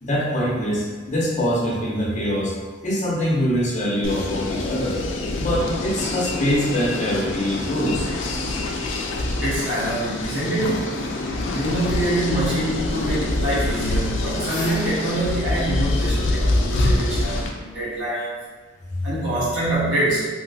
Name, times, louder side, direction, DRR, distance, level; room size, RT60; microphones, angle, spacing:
voice 1, 0.0-2.5 2.8-5.0 5.4-8.1, equal, 40° left, -5 dB, 0.7 m, -23 dB
sound 1, 4.0-17.5, left 2 dB, 85° left, 0.4 m, -25 dB
voice 2, 9.4-11.0 11.5-18.4 19.0-20.2, right 1 dB, 80° right, -9 dB, 1.3 m, -25 dB
sound 2, 14.4-17.1, left 2 dB, 5° left, 1.4 m, -35 dB
3.0 x 2.9 x 2.7 m, 1.3 s
head